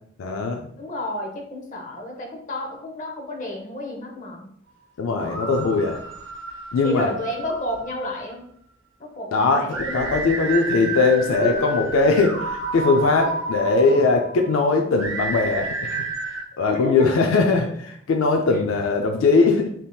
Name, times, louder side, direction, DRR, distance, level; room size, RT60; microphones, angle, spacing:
voice 1, 0.2-0.6 5.0-6.0 6.7-7.1 9.3-9.7 9.9-16.0 16.6-19.7, left 3 dB, 85° left, 3 dB, 0.4 m, -20 dB
voice 2, 0.8-4.5 6.8-8.5 9.0-10.0 11.3-11.9 13.2-13.3 16.7-17.1 18.5-18.6, left 1 dB, 40° left, 0 dB, 0.7 m, -31 dB
sound 1, 5.1-8.3 9.7-16.4, right 3 dB, 70° right, 0.7 m, -31 dB
3.4 x 2.8 x 2.2 m, 0.66 s
head